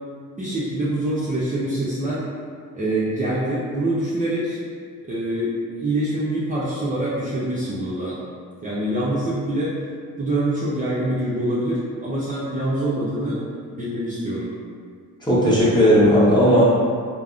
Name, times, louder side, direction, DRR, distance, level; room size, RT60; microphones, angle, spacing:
voice 1, 0.4-2.3 2.7-4.6 5.1-8.2 8.6-9.8 10.2-14.5, right 1 dB, 20° right, -10 dB, 0.6 m, -25 dB
voice 2, 15.2-16.6, equal, 10° left, -9 dB, 1.0 m, -15 dB
3.3 x 2.0 x 2.4 m, 2.1 s
supercardioid pair, 55°, 39 cm